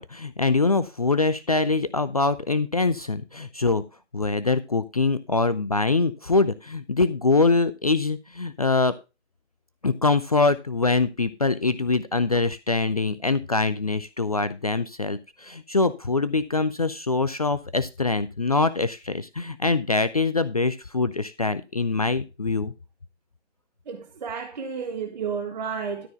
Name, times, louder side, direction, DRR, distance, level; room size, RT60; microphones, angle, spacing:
voice 1, 0.0-3.8 4.1-8.9 9.8-22.7, left 3 dB, 30° left, 0.5 m, -24 dB
voice 2, 23.9-26.1, right 6 dB, 40° right, 1.6 m, -31 dB
13.0 x 4.4 x 5.8 m
figure-of-eight pair, 140°, 36 cm